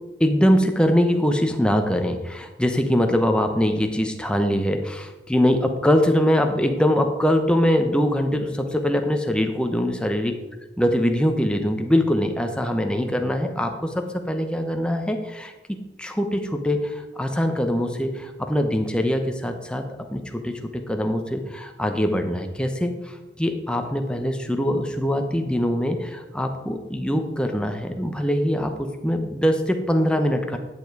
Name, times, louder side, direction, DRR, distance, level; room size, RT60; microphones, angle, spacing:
voice 1, 0.2-10.4 10.8-15.5 16.0-30.6, equal, 5° left, 5 dB, 0.8 m, -23 dB
10.5 x 7.0 x 4.7 m, 1.1 s
head